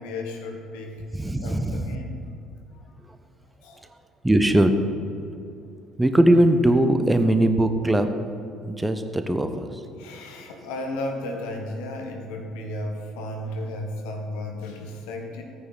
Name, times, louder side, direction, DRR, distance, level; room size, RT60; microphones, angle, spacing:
voice 1, 0.0-1.0 1.4-2.1 3.6-3.8 10.0-15.4, left 1 dB, 65° left, 3 dB, 1.3 m, -34 dB
voice 2, 1.1-1.9 4.2-4.7 6.0-8.1 8.6-9.6, right 1 dB, 10° right, 8 dB, 1.0 m, -20 dB
13.5 x 9.4 x 4.0 m, 2.7 s
figure-of-eight pair, 55°, 0 cm